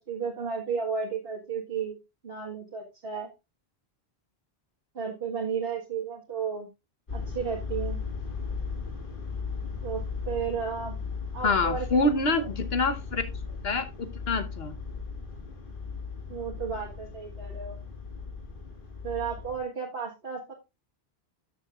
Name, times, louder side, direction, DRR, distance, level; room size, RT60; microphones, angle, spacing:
voice 1, 0.1-2.0 2.2-3.3 5.0-6.7 7.1-8.0 9.8-11.0 11.3-12.1 16.3-17.8 19.0-20.5, right 6 dB, 70° right, -1 dB, 1.8 m, -33 dB
sound 1, 7.1-19.6, left 5 dB, 55° left, 1.9 m, -37 dB
voice 2, 11.4-13.2 13.6-14.7, left 2 dB, 70° left, 9 dB, 1.3 m, -26 dB
13.0 x 6.9 x 2.4 m, 0.26 s
omnidirectional pair, 1.1 m